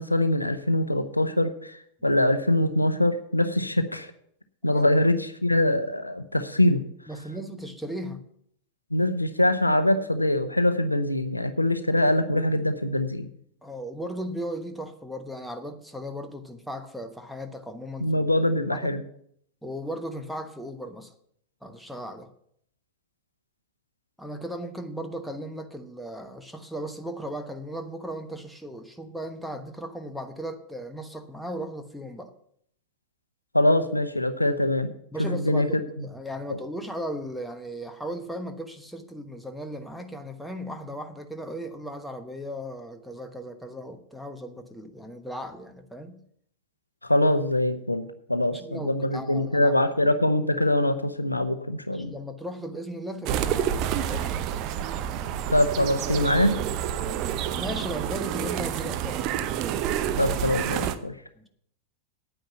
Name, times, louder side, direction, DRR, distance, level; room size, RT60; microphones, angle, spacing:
voice 1, 0.0-4.1 4.6-6.8 8.9-13.3 18.0-19.0 33.5-34.9 35.2-35.7 47.0-52.1 55.5-56.5 60.2-61.1, left 1 dB, 85° left, 10 dB, 0.7 m, -23 dB
voice 2, 7.1-8.2 13.6-18.3 18.7-19.0 19.6-21.1 21.6-22.3 24.2-32.3 35.1-46.2 48.5-49.7 51.9-54.5 57.0-59.3 61.4-61.5, equal, ahead, 6 dB, 1.1 m, -36 dB
sound 1, 53.3-61.0, right 10 dB, 40° right, 0.8 m, -28 dB
9.2 x 9.1 x 5.8 m, 0.68 s
figure-of-eight pair, 90°, 0 cm